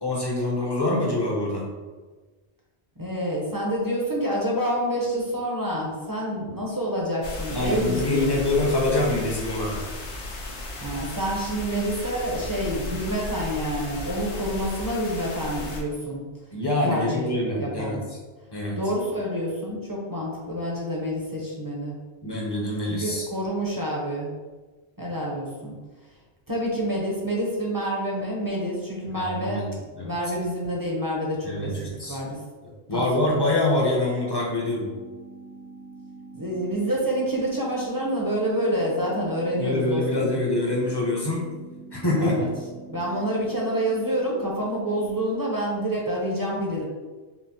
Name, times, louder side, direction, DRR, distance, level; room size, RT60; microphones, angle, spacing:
voice 1, 0.0-1.7 7.5-9.9 16.5-18.0 18.5-18.8 22.2-23.3 29.0-29.7 29.9-30.1 31.4-32.2 32.9-34.9 39.6-41.4 41.9-42.4, left 2 dB, 25° left, -3 dB, 0.6 m, -25 dB
voice 2, 3.0-8.4 10.8-16.3 16.8-17.3 17.6-18.0 18.8-22.0 22.9-24.3 25.0-25.8 26.5-29.7 30.0-31.7 32.1-32.4 32.9-33.7 36.3-40.3 42.2-42.5 42.9-46.8, equal, 25° right, -4 dB, 0.6 m, -28 dB
sound 1, 7.2-15.8, left 2 dB, 80° left, 1.0 m, -35 dB
sound 2, 34.4-45.3, right 3 dB, 55° right, 0.9 m, -44 dB
5.5 x 2.0 x 2.8 m, 1.3 s
omnidirectional pair, 1.2 m